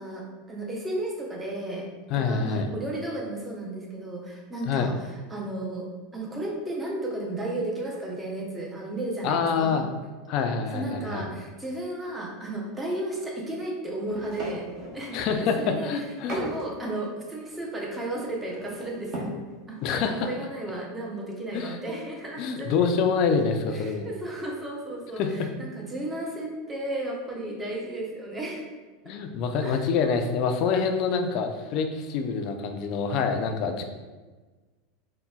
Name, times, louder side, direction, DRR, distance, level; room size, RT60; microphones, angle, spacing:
voice 1, 0.0-1.9 2.1-9.9 10.7-14.7 14.9-15.2 15.6-16.1 16.3-19.3 19.7-22.7 23.7-28.7 29.0-29.1 29.6-29.8, right 1 dB, 15° right, -1 dB, 0.6 m, -34 dB
voice 2, 2.1-2.7 4.7-4.9 9.2-9.9 10.3-11.2 15.1-16.4 19.8-20.3 21.5-21.8 22.4-24.1 25.2-25.5 29.1-33.8, left 5 dB, 50° left, 5 dB, 0.3 m, -26 dB
sound 1, 14.0-15.3 15.9-16.7 17.0-17.1 17.3-19.5 19.8-19.9 20.2-20.4 20.7-20.8 22.4-22.9 23.4-23.5 23.8-24.2, equal, 45° right, 0.8 m, -39 dB
3.9 x 2.1 x 2.3 m, 1.3 s
supercardioid pair, 130°, 0 cm